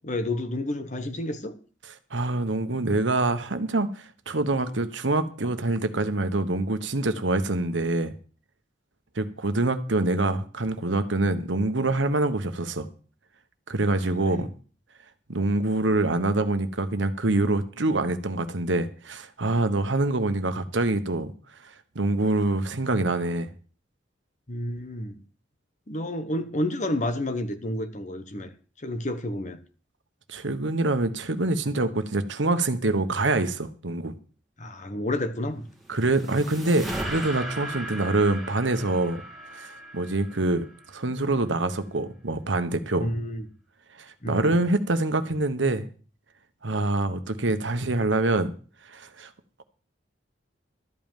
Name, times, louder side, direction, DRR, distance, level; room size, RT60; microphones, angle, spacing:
voice 1, 0.0-1.5 14.2-14.5 24.5-25.2 25.9-28.5 28.8-29.6 34.6-35.6 43.0-43.4 44.2-44.6, left 1 dB, 40° left, 1.2 m, -30 dB
voice 2, 2.1-8.1 9.2-12.9 13.7-14.5 15.3-21.3 21.6-23.5 30.3-34.1 35.9-39.2 39.5-40.7 40.9-43.1 44.0-45.9 46.6-48.5 48.9-49.3, right 2 dB, 75° right, 1.2 m, -25 dB
sound 1, 35.6-41.0, right 1 dB, ahead, 2.5 m, -37 dB
13.0 x 5.4 x 9.1 m
head